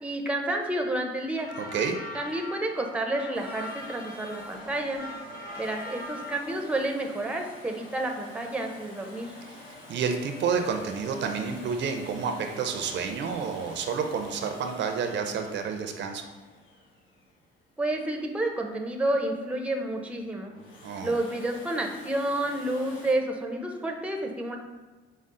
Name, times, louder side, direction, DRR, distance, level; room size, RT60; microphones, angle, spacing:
voice 1, 0.0-1.5 2.1-5.0 5.6-9.3 17.8-20.5 21.0-24.6, right 1 dB, 5° right, 3 dB, 0.5 m, -30 dB
sound 1, 1.4-6.7, left 1 dB, 45° left, 1.0 m, -41 dB
voice 2, 1.6-2.0 9.5-9.6 9.9-16.3 20.8-21.1, right 6 dB, 65° right, 5 dB, 0.5 m, -30 dB
Domestic sounds home sounds, 3.3-18.1 20.4-23.1, left 2 dB, 80° left, 0.9 m, -47 dB
5.2 x 2.0 x 3.7 m, 1.3 s
cardioid pair, 90°, 20 cm